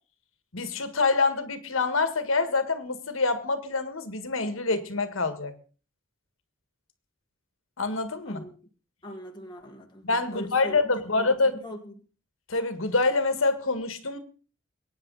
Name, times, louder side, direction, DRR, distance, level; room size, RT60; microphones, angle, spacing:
voice 1, 0.5-5.5 7.8-8.4 10.0-11.6 12.5-14.2, left 3 dB, 70° left, 9 dB, 1.7 m, -26 dB
voice 2, 8.2-8.6 9.0-10.0 10.3-10.8 11.2-11.3 11.5-11.9, equal, 20° left, 2 dB, 1.6 m, -41 dB
23.0 x 9.4 x 4.0 m, 0.39 s
head